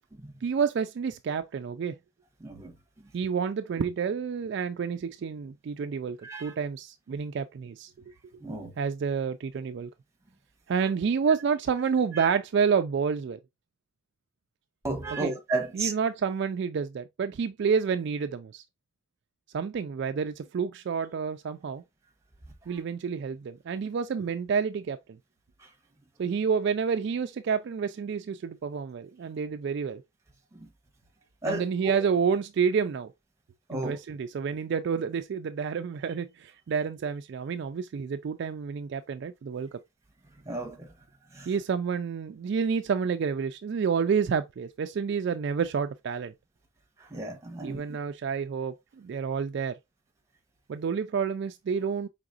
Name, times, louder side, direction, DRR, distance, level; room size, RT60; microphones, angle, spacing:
voice 1, 0.4-2.0 3.1-7.9 8.8-9.9 10.7-13.4 15.1-15.3 15.7-18.6 19.5-21.8 22.7-25.0 26.2-30.0 31.5-33.1 33.7-39.8 41.5-46.3 47.6-49.8 50.7-52.1, right 6 dB, 55° right, 0.3 m, -29 dB
voice 2, 2.4-2.7 6.2-6.5 8.4-8.7 12.2-12.3 14.8-15.9 30.5-30.7 31.4-31.9 33.7-34.0 40.5-40.9 41.3-41.5 47.1-47.8, right 2 dB, 15° right, 0.9 m, -33 dB
4.8 x 3.5 x 2.4 m
head